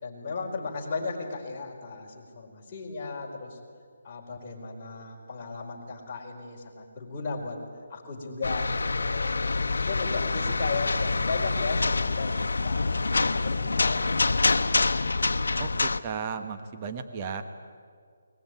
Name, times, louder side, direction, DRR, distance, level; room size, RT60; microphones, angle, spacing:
voice 1, 0.0-3.6 4.0-7.6 7.9-9.4 9.8-12.4 12.6-15.2, left 4 dB, 25° left, -4 dB, 4.5 m, -36 dB
sound 1, 8.4-16.0, left 3 dB, 85° left, 0.9 m, -26 dB
voice 2, 15.6-17.4, right 6 dB, 25° right, 7 dB, 1.2 m, -35 dB
21.0 x 20.5 x 9.3 m, 2.1 s
hypercardioid pair, 170°, 0 cm